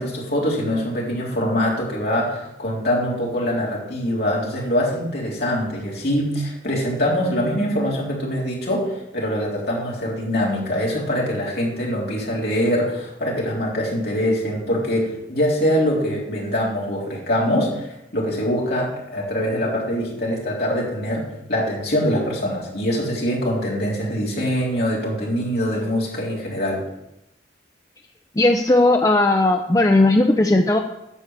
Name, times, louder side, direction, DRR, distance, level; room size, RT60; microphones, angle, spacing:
voice 1, 0.0-26.8, equal, 55° left, -4 dB, 3.8 m, -23 dB
voice 2, 28.4-30.8, left 2 dB, 20° left, 4 dB, 0.5 m, -16 dB
9.9 x 7.1 x 7.4 m, 0.88 s
head